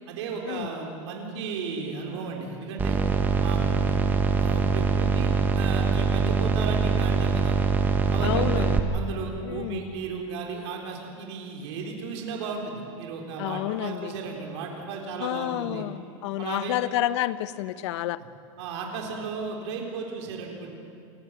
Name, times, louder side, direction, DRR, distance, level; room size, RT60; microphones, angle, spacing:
voice 1, 0.1-3.0 3.4-4.0 4.4-5.3 5.5-7.6 8.1-8.7 8.9-15.9 16.4-16.8 18.6-20.7, right 5 dB, 65° right, 1 dB, 3.8 m, -34 dB
sound 1, 2.8-8.8, right 5 dB, 10° right, 0.9 m, -23 dB
voice 2, 8.2-8.9 9.4-9.9 13.4-14.1 15.2-18.2, left 14 dB, 65° left, 15 dB, 0.8 m, -29 dB
28.0 x 13.5 x 8.1 m, 2.5 s
supercardioid pair, 180°, 16 cm